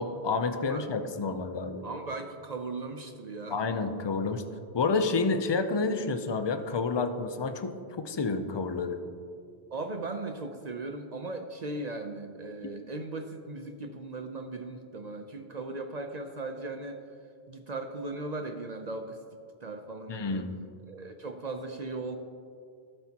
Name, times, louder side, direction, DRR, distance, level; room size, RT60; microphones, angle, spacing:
voice 1, 0.0-1.9 3.5-4.4 4.7-9.0 20.1-20.6, left 4 dB, 35° left, 9 dB, 0.4 m, -29 dB
voice 2, 1.8-3.6 9.7-17.0 17.5-19.2 19.6-20.4 20.9-22.2, right 2 dB, 45° right, 5 dB, 0.6 m, -38 dB
17.0 x 7.7 x 2.9 m, 2.3 s
omnidirectional pair, 1.1 m